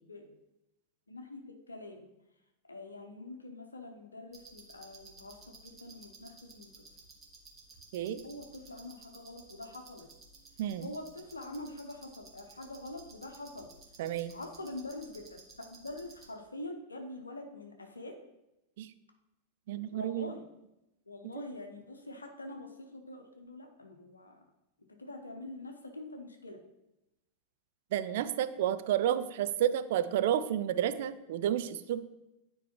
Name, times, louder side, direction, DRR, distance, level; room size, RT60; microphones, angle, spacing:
voice 1, 1.1-2.1 2.7-6.7 8.2-10.1 10.8-13.7 14.3-15.4 15.7-18.2 19.7-20.4 21.1-24.4 25.0-26.6, left 2 dB, 80° left, 3 dB, 0.8 m, -45 dB
sound 1, 4.3-16.3, right 3 dB, 25° right, 1.6 m, -55 dB
voice 2, 14.0-14.4 18.8-18.9 19.7-20.3 27.9-32.0, right 11 dB, 55° right, 12 dB, 0.4 m, -31 dB
9.1 x 4.6 x 3.1 m, 0.90 s
figure-of-eight pair, 90°, 0 cm